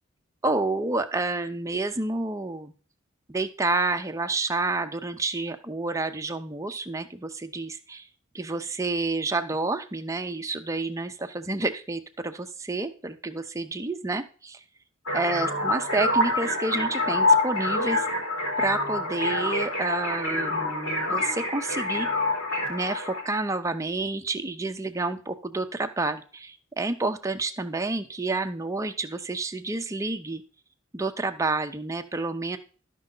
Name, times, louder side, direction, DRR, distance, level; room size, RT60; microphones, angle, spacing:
voice 1, 0.4-2.7 3.3-8.1 8.3-14.6 15.1-18.1 18.6-22.1 22.7-30.4 30.9-32.6, right 3 dB, 15° right, 7 dB, 0.6 m, -29 dB
sound 1, 15.1-23.2, left 2 dB, 90° left, 4.0 m, -26 dB
12.5 x 5.3 x 3.8 m, 0.39 s
head